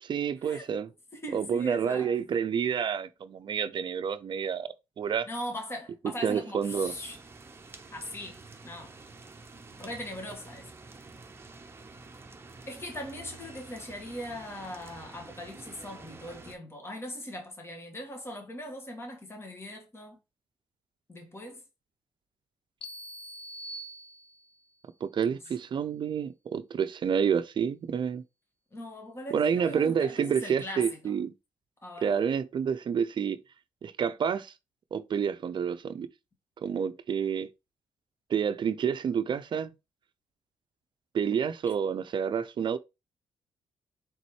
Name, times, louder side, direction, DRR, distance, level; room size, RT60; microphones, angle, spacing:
voice 1, 0.0-0.9 1.3-4.7 5.0-5.3 6.2-6.9 25.0-28.2 29.3-31.3 32.0-33.4 33.8-34.5 34.9-36.1 36.6-37.5 38.3-39.7 41.1-42.8, right 7 dB, 50° right, 0.6 m, -29 dB
voice 2, 1.1-2.1 5.3-7.2 7.9-9.0 9.8-10.7 12.6-20.2 21.1-21.6 28.7-31.1 31.8-32.1 41.7-41.8, equal, 25° left, 1.8 m, -40 dB
sound 1, 6.6-16.6, right 3 dB, 25° right, 0.9 m, -49 dB
sound 2, 22.8-24.7, right 1 dB, 55° left, 1.0 m, -43 dB
4.1 x 3.7 x 3.1 m
supercardioid pair, 70°, 10 cm